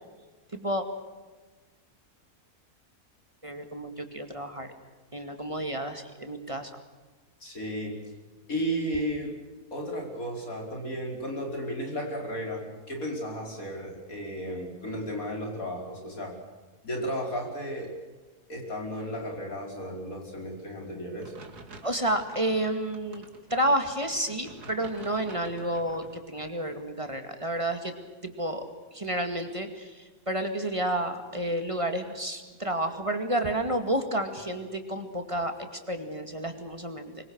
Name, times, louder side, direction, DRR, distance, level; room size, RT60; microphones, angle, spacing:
voice 1, 0.5-0.8 3.4-4.7 5.1-6.7 21.8-23.2 23.5-27.9 28.2-28.6 28.9-35.5 35.9-37.3, right 1 dB, 20° right, 6 dB, 2.2 m, -30 dB
voice 2, 7.4-8.0 8.5-9.3 9.7-16.3 16.8-17.9 18.5-21.3, equal, 60° left, 1 dB, 5.6 m, -34 dB
sound 1, 21.2-26.2, right 2 dB, 80° right, 3.0 m, -49 dB
25.0 x 23.0 x 6.5 m, 1.3 s
omnidirectional pair, 1.6 m